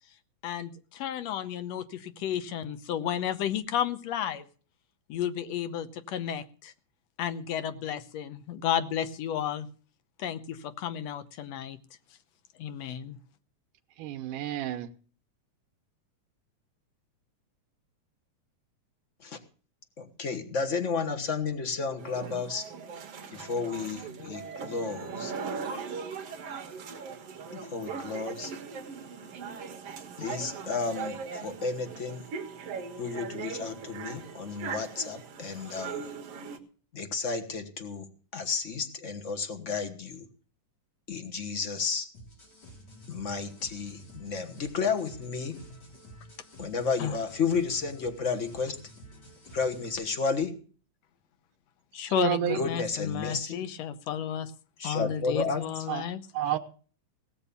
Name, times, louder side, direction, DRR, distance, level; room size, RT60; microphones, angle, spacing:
voice 1, 0.4-4.5 5.1-6.7 7.2-9.7 10.2-11.8 12.6-13.2 47.0-47.2 51.9-54.5 54.8-56.2, left 9 dB, 70° left, 10 dB, 1.8 m, -32 dB
voice 2, 14.0-14.9 52.1-52.6 55.0-55.1 55.9-56.0 56.4-56.6, right 12 dB, 85° right, 3 dB, 2.4 m, -30 dB
voice 3, 20.0-22.7 23.3-25.3 27.5-28.5 30.2-31.2 31.4-32.2 33.0-36.0 36.9-40.2 41.1-42.1 43.1-45.6 46.6-48.7 49.5-50.5 52.5-53.6 54.8-55.6, left 5 dB, 50° left, 6 dB, 0.8 m, -32 dB
sound 1, 22.0-36.6, right 5 dB, 55° right, 2.4 m, -39 dB
sound 2, 42.1-49.9, equal, 30° left, 4.0 m, -50 dB
18.0 x 7.5 x 6.9 m, 0.41 s
omnidirectional pair, 3.6 m